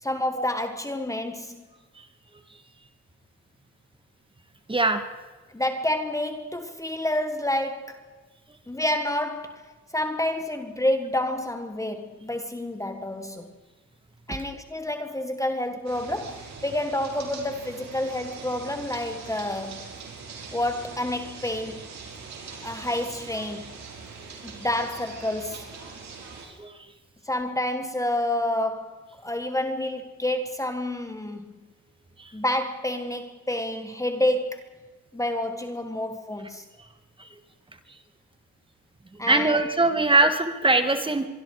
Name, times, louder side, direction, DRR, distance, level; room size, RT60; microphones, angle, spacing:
voice 1, 0.0-1.6 5.5-8.0 8.7-13.5 14.3-19.8 20.5-21.9 22.6-23.8 24.4-25.7 27.3-31.5 32.3-34.6 35.1-36.7 39.2-39.7, left 1 dB, 10° left, 7 dB, 1.7 m, -29 dB
voice 2, 4.7-5.0 26.6-26.7 32.2-32.3 39.3-41.3, right 2 dB, 15° right, 8 dB, 2.2 m, -21 dB
sound 1, 15.8-26.5, right 5 dB, 65° right, 5.6 m, -42 dB
25.5 x 23.0 x 5.1 m, 1.3 s
cardioid pair, 90°, 30 cm